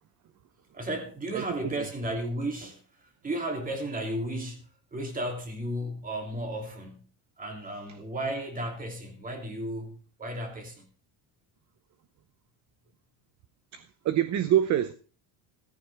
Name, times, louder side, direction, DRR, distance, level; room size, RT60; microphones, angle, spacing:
voice 1, 0.7-2.8 3.2-4.6 4.9-7.1 7.4-10.9, right 1 dB, 20° right, 2.9 m, -34 dB
voice 2, 1.3-1.9 13.7-14.9, right 11 dB, 40° right, 0.8 m, -26 dB
14.5 x 14.0 x 3.5 m
cardioid pair, 165°, 45 cm